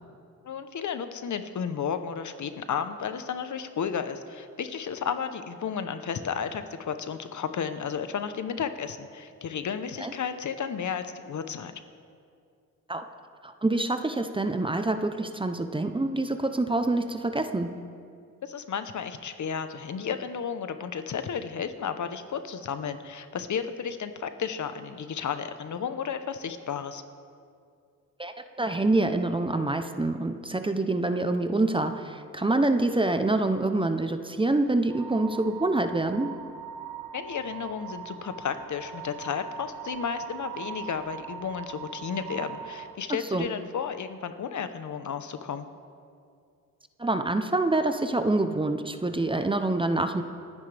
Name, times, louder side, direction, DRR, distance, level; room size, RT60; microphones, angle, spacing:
voice 1, 0.4-11.7 18.4-27.0 37.1-45.7, left 7 dB, 60° left, 10 dB, 0.9 m, -33 dB
voice 2, 13.4-17.8 28.2-36.4 43.3-43.5 47.0-50.2, right 2 dB, 15° right, 8 dB, 0.7 m, -26 dB
sound 1, 34.9-43.0, right 8 dB, 80° right, 0.9 m, -41 dB
29.0 x 9.8 x 3.4 m, 2.3 s
cardioid pair, 85°, 33 cm